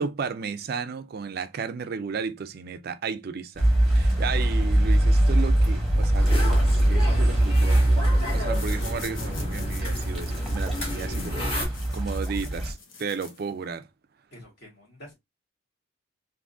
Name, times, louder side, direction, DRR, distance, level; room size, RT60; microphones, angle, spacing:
voice 1, 0.0-7.8 8.3-13.9, right 5 dB, 50° right, 0.4 m, -34 dB
sound 1, 3.6-12.7, right 1 dB, ahead, 1.0 m, -22 dB
sound 2, 6.2-11.7, left 1 dB, 30° left, 1.8 m, -34 dB
sound 3, 8.5-13.8, left 4 dB, 70° left, 0.9 m, -45 dB
voice 2, 14.3-15.1, equal, 55° left, 1.7 m, -47 dB
3.5 x 2.6 x 2.5 m
head